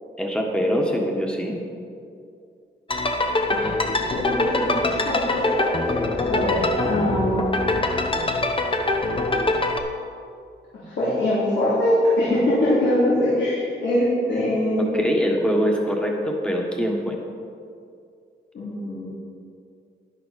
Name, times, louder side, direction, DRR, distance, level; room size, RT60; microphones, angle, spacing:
voice 1, 0.2-1.6 14.8-17.2, equal, 5° left, 0 dB, 1.5 m, -23 dB
sound 1, 2.9-9.8, left 2 dB, 30° left, 0.8 m, -23 dB
voice 2, 4.1-7.5 10.8-14.9 18.5-19.1, left 1 dB, 75° left, -10 dB, 3.0 m, -23 dB
11.5 x 10.5 x 4.2 m, 2.4 s
wide cardioid pair, 135°, 19 cm